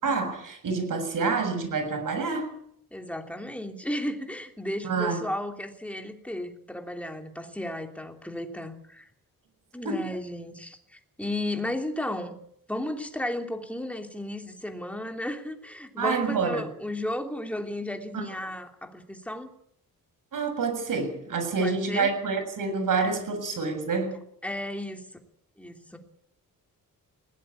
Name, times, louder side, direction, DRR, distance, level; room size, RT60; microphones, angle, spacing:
voice 1, 0.0-2.6 4.8-5.2 9.8-10.0 16.0-16.7 18.1-18.2 20.3-24.2, right 4 dB, 60° right, 7 dB, 7.2 m, -27 dB
voice 2, 2.9-9.0 9.7-12.3 12.7-19.5 21.6-22.1 24.4-25.1 25.6-26.0, left 1 dB, 5° left, 4 dB, 3.1 m, -34 dB
20.5 x 17.5 x 8.6 m, 0.69 s
wide cardioid pair, 145°, 36 cm